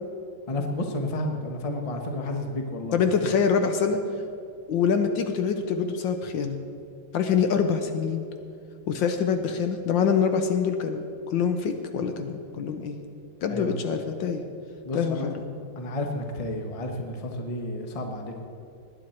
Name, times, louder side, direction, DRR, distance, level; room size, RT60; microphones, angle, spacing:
voice 1, 0.5-3.0 13.5-13.8 14.8-15.3 15.8-18.4, left 1 dB, 25° left, 3 dB, 0.8 m, -31 dB
voice 2, 2.9-4.0 4.7-6.6 7.1-8.2 8.9-11.0 11.3-13.0 13.4-14.4 14.9-15.5, left 6 dB, 70° left, 7 dB, 1.4 m, -25 dB
19.0 x 9.5 x 4.4 m, 2.5 s
omnidirectional pair, 2.3 m